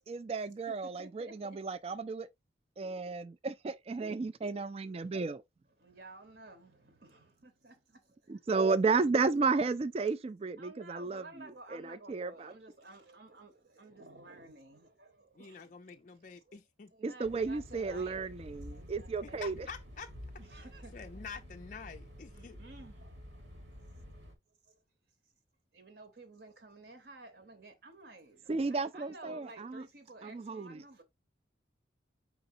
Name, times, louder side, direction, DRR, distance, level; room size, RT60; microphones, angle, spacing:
voice 1, 0.1-2.3 2.8-5.4 8.3-12.5 17.0-19.7 28.5-29.8 30.2-30.8, right 4 dB, 30° right, 0.3 m, -33 dB
voice 2, 0.7-1.6 5.8-8.4 10.6-16.6 16.9-18.3 18.6-19.4 20.4-21.0 22.3-23.4 24.7-24.8 25.7-31.0, right 2 dB, 55° right, 1.0 m, -53 dB
voice 3, 15.4-16.9 19.4-20.1 20.9-22.6, left 5 dB, 40° left, 0.4 m, -47 dB
sound 1, 17.2-24.4, equal, 80° right, 1.4 m, -50 dB
4.9 x 3.9 x 2.6 m
head